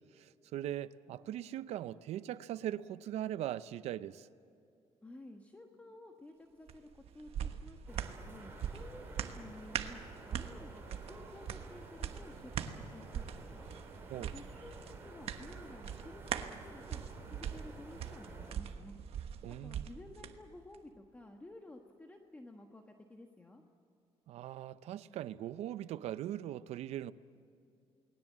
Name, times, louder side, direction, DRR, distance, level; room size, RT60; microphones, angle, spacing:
voice 1, 0.2-4.3 14.1-14.3 19.4-19.9 24.3-27.1, right 12 dB, 80° right, 0.7 m, -40 dB
voice 2, 5.0-10.0 10.3-13.7 14.3-17.0 17.3-18.9 19.6-23.6, left 2 dB, 15° left, 1.4 m, -53 dB
sound 1, 6.7-20.3 20.7-20.8, right 9 dB, 65° right, 1.2 m, -42 dB
sound 2, 7.9-18.6, right 2 dB, 20° right, 5.3 m, -52 dB
29.0 x 20.0 x 7.5 m
cardioid pair, 125°, 11 cm